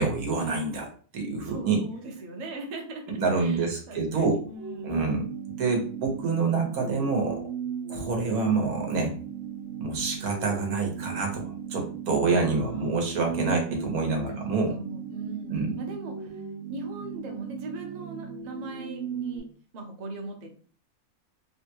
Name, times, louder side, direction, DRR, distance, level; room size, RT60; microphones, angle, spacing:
voice 1, 0.0-1.8 3.2-4.4 4.8-5.3 5.6-7.4 7.9-9.1 9.8-14.8 15.5-15.7, right 4 dB, 90° right, 2 dB, 1.4 m, -27 dB
voice 2, 1.4-3.0 3.4-4.9 12.5-13.1 14.2-16.4 16.7-19.4 19.7-20.5, right 2 dB, 45° right, 2 dB, 0.6 m, -40 dB
sound 1, 4.6-19.4, right 6 dB, 70° right, 1.0 m, -37 dB
3.6 x 2.2 x 2.7 m, 0.42 s
omnidirectional pair, 1.4 m